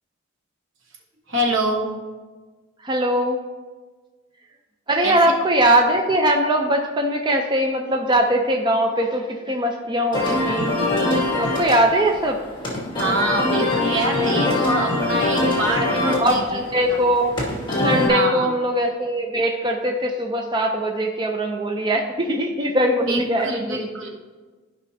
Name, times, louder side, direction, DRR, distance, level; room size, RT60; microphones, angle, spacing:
voice 1, 1.3-1.9 5.0-5.2 13.0-16.6 16.9-17.0 18.1-18.5 23.1-24.1, right 1 dB, 70° right, 1 dB, 1.2 m, -25 dB
voice 2, 2.8-3.4 4.9-10.7 11.4-12.4 16.0-17.3 17.8-23.8, right 1 dB, 20° right, 2 dB, 0.5 m, -21 dB
sound 1, 10.1-18.1, left 2 dB, 25° left, 2.0 m, -23 dB
13.5 x 5.4 x 2.8 m, 1.3 s
head